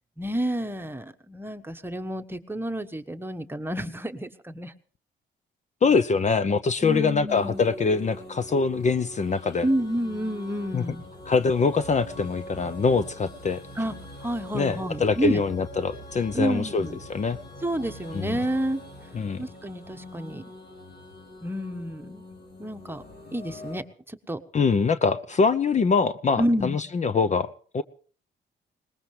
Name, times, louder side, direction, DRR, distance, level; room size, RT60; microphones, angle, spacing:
voice 1, 0.2-4.7 6.8-7.6 9.6-11.0 13.8-13.9 14.2-15.4 16.3-17.0 17.6-18.8 19.4-20.4 21.4-22.2 22.6-23.0 23.3-24.4 26.4-26.8, right 1 dB, 10° right, 8 dB, 1.3 m, -29 dB
voice 2, 5.8-9.7 10.7-10.8 11.3-13.6 14.5-17.4 18.1-18.4 19.1-19.4 24.5-27.8, left 5 dB, 35° left, 14 dB, 0.7 m, -24 dB
sound 1, 7.3-23.8, left 1 dB, 55° left, 4.0 m, -43 dB
22.0 x 20.0 x 3.3 m, 0.42 s
cardioid pair, 90°, 20 cm